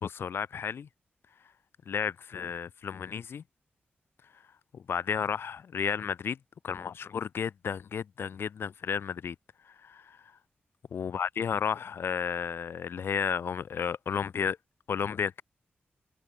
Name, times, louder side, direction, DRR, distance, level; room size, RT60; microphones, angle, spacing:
voice 1, 0.0-0.9 1.9-3.4 4.7-6.4 6.6-9.3 9.7-10.2 10.9-14.6 14.9-15.4, left 7 dB, 80° left, 1.6 m, -32 dB
open air
wide cardioid pair, 105°, 4 cm